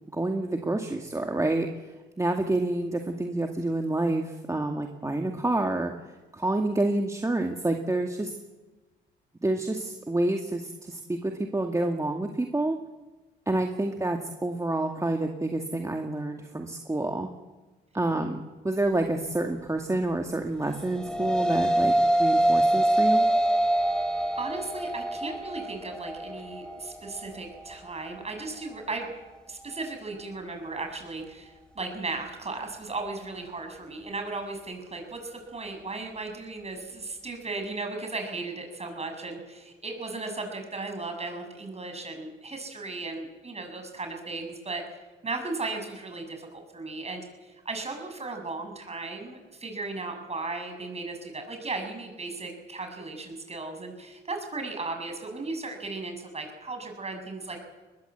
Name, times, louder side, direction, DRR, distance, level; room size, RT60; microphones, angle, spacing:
voice 1, 0.1-1.7 2.2-5.9 6.3-8.3 9.4-12.8 13.5-17.3 17.9-23.3, right 2 dB, 15° right, 3 dB, 2.1 m, -28 dB
sound 1, 20.7-29.9, right 1 dB, 5° left, 4.1 m, -26 dB
voice 2, 24.4-29.1 29.5-57.6, right 3 dB, 35° right, 5 dB, 7.0 m, -36 dB
21.5 x 21.0 x 8.2 m, 1.2 s
cardioid pair, 75°, 19 cm